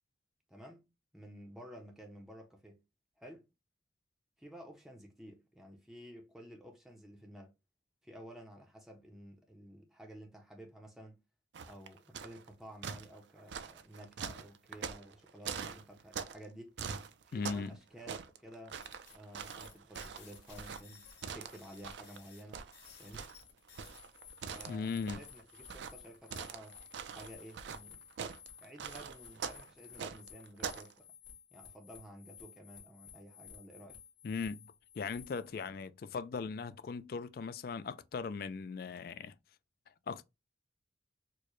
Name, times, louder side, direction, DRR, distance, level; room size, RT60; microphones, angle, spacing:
voice 1, 0.5-0.9 1.1-2.8 3.2-3.5 4.4-7.5 8.0-11.2 11.6-16.8 17.3-18.9 19.1-22.6 23.0-23.3 24.4-26.8 27.1-28.1 28.6-31.1 31.5-34.0, equal, ahead, 0.5 m, -52 dB
sound 1, 11.5-12.5 12.8-16.5 16.8-17.7 18.0-22.2 22.5-30.9, right 6 dB, 70° right, 0.4 m, -43 dB
voice 2, 17.3-17.8 24.7-25.2 34.2-34.7 35.0-39.3 40.1-40.2, left 5 dB, 50° left, 0.3 m, -38 dB
sound 2, 18.8-35.7, left 7 dB, 85° left, 1.8 m, -56 dB
4.4 x 2.1 x 3.0 m
head